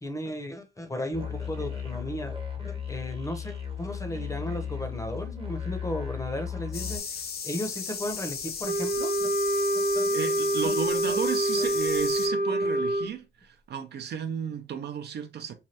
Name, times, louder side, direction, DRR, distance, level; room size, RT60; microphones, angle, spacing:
voice 1, 0.0-2.4 2.6-7.0 7.4-9.3 9.7-10.1 10.6-10.7 11.1-11.2 11.6-11.7 12.5-12.6, left 1 dB, 15° left, 0.7 m, -35 dB
Musical instrument, 1.1-7.0, left 8 dB, 25° right, 0.8 m, -35 dB
sound 1, 6.7-12.3, left 6 dB, 50° left, 0.7 m, -36 dB
Wind instrument woodwind instrument, 8.6-13.1, right 1 dB, 75° left, 1.4 m, -26 dB
voice 2, 10.1-15.5, right 7 dB, 55° right, 0.5 m, -33 dB
3.2 x 2.2 x 2.8 m
cardioid pair, 90°, 20 cm